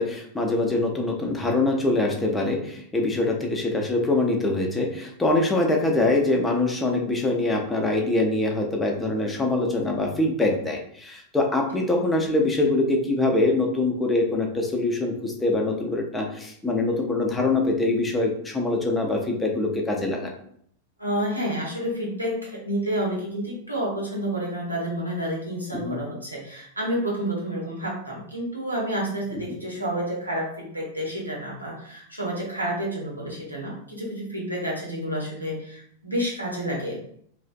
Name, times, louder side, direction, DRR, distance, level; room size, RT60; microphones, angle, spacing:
voice 1, 0.0-20.3 25.7-26.0 29.3-29.4, left 2 dB, 10° left, 1 dB, 0.5 m, -24 dB
voice 2, 21.0-37.0, right 1 dB, 85° right, -3 dB, 0.7 m, -29 dB
2.4 x 2.2 x 2.4 m, 0.66 s
figure-of-eight pair, 90°, 0 cm